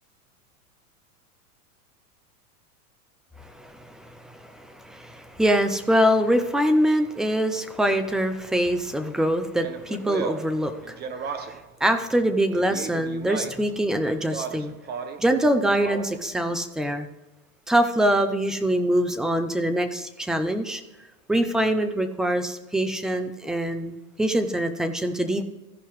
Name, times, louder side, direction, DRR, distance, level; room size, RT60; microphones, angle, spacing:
voice 1, 3.4-11.3 11.8-14.7 15.2-17.1 17.7-20.8 21.3-25.4, right 1 dB, ahead, 9 dB, 0.3 m, -24 dB
Speech, 9.6-11.7 12.5-13.7 14.2-15.3 15.7-16.3, right 6 dB, 20° right, 0.8 m, -35 dB
16.5 x 5.5 x 3.1 m, 1.1 s
hypercardioid pair, 120°, 46 cm